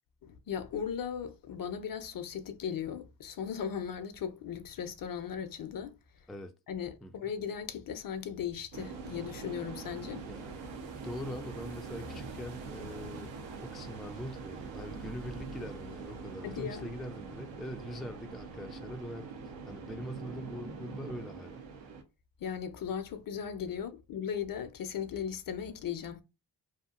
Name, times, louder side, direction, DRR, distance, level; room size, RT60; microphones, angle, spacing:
voice 1, 0.2-5.9 6.7-10.2 16.4-16.9 22.4-26.2, left 8 dB, 50° left, 0.6 m, -37 dB
sound 1, 8.7-22.0, right 4 dB, 85° right, 0.7 m, -43 dB
voice 2, 11.0-19.3 19.6-21.6, equal, ahead, 0.3 m, -42 dB
2.8 x 2.4 x 2.4 m
supercardioid pair, 50°, 44 cm